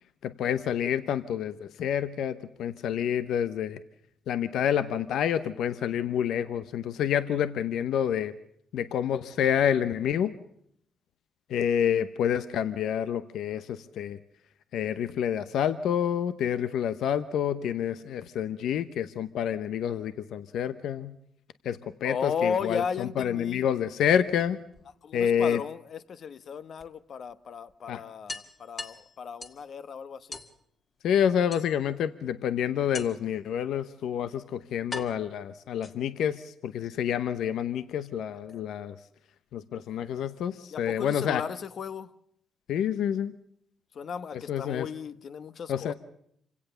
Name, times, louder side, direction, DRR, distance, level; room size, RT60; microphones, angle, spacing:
voice 1, 0.2-3.8 4.3-8.3 8.7-10.3 11.5-14.2 14.7-21.1 21.6-24.6 25.1-25.6 27.9-28.0 31.0-39.0 39.5-41.4 42.7-43.3 44.3-44.9 45.7-45.9, left 9 dB, 75° left, 13 dB, 0.8 m, -28 dB
voice 2, 22.0-23.6 25.0-30.4 38.5-38.6 40.7-42.1 43.9-45.9, left 6 dB, 55° left, 14 dB, 1.0 m, -35 dB
sound 1, 24.3-25.3 26.8-26.9 27.3-27.4 27.7-27.8 28.3-29.7 30.3-30.6 31.5-32.1 32.9-33.4 34.2-34.3 34.9-36.3, left 3 dB, 35° left, 2.0 m, -41 dB
26.5 x 17.0 x 6.9 m, 0.70 s
cardioid pair, 90°, 0 cm